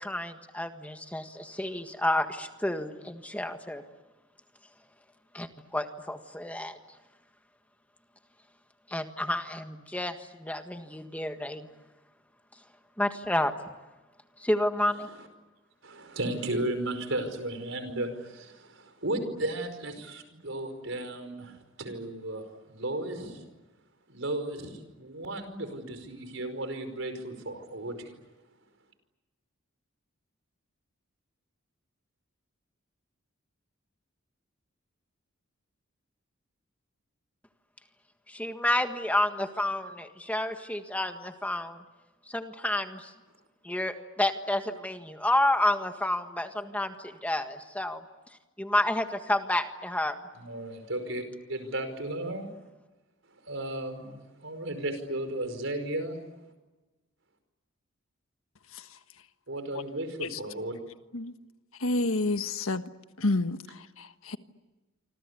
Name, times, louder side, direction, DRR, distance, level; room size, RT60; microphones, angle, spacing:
voice 1, 0.0-3.8 5.3-6.8 8.9-11.7 13.0-13.5 14.4-15.1 38.3-41.8 42.3-43.1 43.6-48.0 48.6-50.2, left 1 dB, 5° left, 1.6 m, -30 dB
voice 2, 15.8-23.4 24.1-28.2 50.3-51.2 51.5-52.5 53.4-56.2 59.5-60.7, right 1 dB, 65° right, 5.2 m, -34 dB
voice 3, 61.8-62.8 63.2-64.4, left 2 dB, 85° left, 1.5 m, -29 dB
27.5 x 26.0 x 8.3 m
head